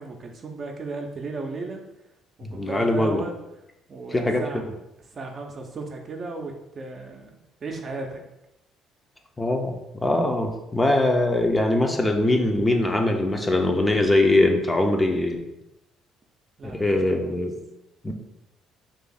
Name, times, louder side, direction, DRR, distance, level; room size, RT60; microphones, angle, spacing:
voice 1, 0.0-1.8 2.4-3.4 3.9-4.7 5.1-8.2 16.6-17.5, right 3 dB, 45° right, 2 dB, 0.5 m, -35 dB
voice 2, 2.4-3.2 4.1-4.4 9.4-15.4 16.6-17.6 18.0-18.1, left 2 dB, 20° left, 3 dB, 0.5 m, -22 dB
2.6 x 2.5 x 3.8 m, 0.89 s
hypercardioid pair, 50°, 0 cm